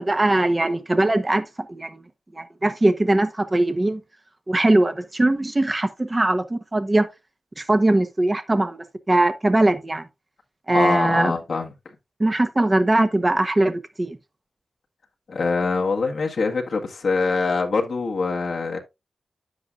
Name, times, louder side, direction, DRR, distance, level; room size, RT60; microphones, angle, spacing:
voice 1, 0.0-2.0 2.3-4.0 4.5-7.1 7.6-8.8 9.1-10.1 10.7-11.3 12.2-14.2, right 2 dB, 25° right, 1.0 m, -21 dB
voice 2, 10.7-11.7 15.3-18.8, left 4 dB, 75° left, 1.6 m, -24 dB
9.6 x 8.0 x 2.5 m
wide cardioid pair, 80°, 0 cm